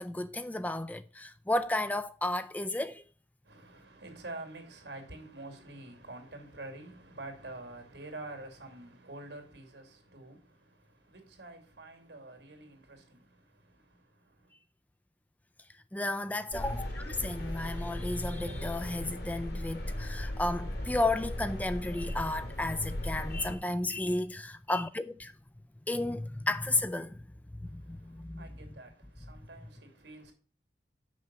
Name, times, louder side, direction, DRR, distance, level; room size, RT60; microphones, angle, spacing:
voice 1, 0.0-3.0 15.9-25.3 25.9-27.2 27.6-28.4, left 2 dB, 10° left, 0.3 m, -33 dB
voice 2, 3.4-14.5 27.6-30.3, right 2 dB, 85° right, 2.6 m, -47 dB
sound 1, 16.5-23.5, left 1 dB, 65° left, 2.2 m, -37 dB
6.2 x 5.7 x 6.9 m
head